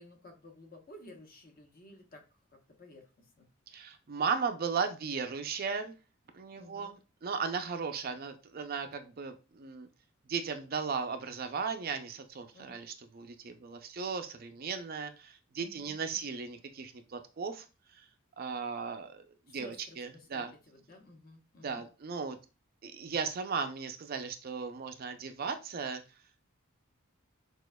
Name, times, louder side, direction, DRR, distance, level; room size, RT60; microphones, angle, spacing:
voice 1, 0.0-2.2 2.5-3.5 6.6-7.0 12.5-12.7 15.6-16.3 19.5-21.8, left 1 dB, 45° left, 3 dB, 0.9 m, -54 dB
voice 2, 3.7-6.0 6.3-9.9 10.3-17.6 17.9-18.0 18.4-19.2 19.5-20.5 21.6-22.4 22.8-26.0, right 5 dB, 45° right, 7 dB, 0.4 m, -36 dB
6.1 x 2.4 x 2.2 m, 0.31 s
head